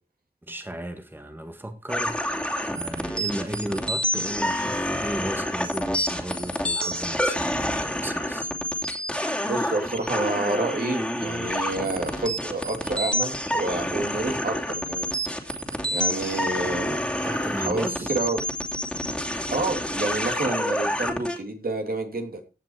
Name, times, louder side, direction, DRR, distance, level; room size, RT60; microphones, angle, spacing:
voice 1, 0.5-8.5 17.2-18.1, right 1 dB, 10° right, 1.7 m, -35 dB
sound 1, 1.9-21.4, equal, 5° left, 2.8 m, -28 dB
voice 2, 9.4-15.1 15.8-18.4 19.5-22.4, right 2 dB, 65° right, 2.8 m, -29 dB
16.0 x 6.0 x 4.7 m
wide cardioid pair, 55°, 17 cm